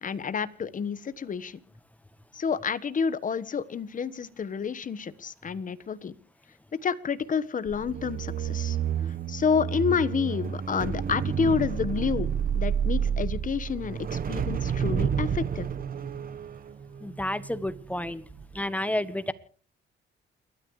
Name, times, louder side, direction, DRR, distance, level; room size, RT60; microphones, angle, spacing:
voice 1, 0.0-1.6 2.3-6.1 6.8-8.8 9.1-15.7, left 6 dB, 40° left, 16 dB, 1.2 m, -29 dB
sound 1, 7.7-18.0 18.3-18.6, right 8 dB, 45° right, 1.1 m, -30 dB
voice 2, 17.0-18.2 18.5-19.3, left 1 dB, 5° left, 15 dB, 1.2 m, -30 dB
29.0 x 13.0 x 3.2 m, 0.41 s
cardioid pair, 90°, 20 cm